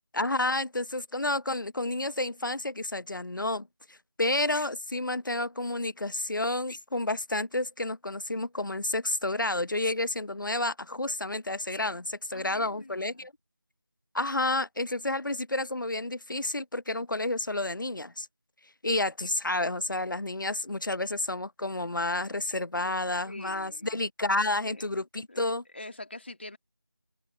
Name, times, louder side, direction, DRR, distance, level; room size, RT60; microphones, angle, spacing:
voice 1, 0.0-13.3 14.1-18.3 18.8-25.6, left 2 dB, 70° left, 0.9 m, -30 dB
voice 2, 12.3-13.3 23.2-24.0 24.6-24.8 25.3-26.6, left 2 dB, 35° left, 2.2 m, -45 dB
figure-of-eight pair, 175°, 11 cm